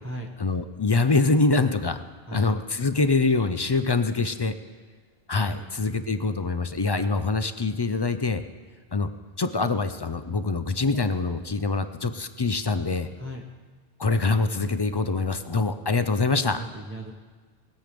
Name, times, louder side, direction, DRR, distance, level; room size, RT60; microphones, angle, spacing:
voice 1, 0.4-2.0 2.3-4.6 5.3-8.4 8.9-9.1 9.4-13.1 14.0-16.6, left 3 dB, 35° left, 10 dB, 0.4 m, -24 dB
voice 2, 16.5-17.1, right 1 dB, 15° right, 0 dB, 0.9 m, -37 dB
20.5 x 7.6 x 5.2 m, 1.5 s
omnidirectional pair, 1.1 m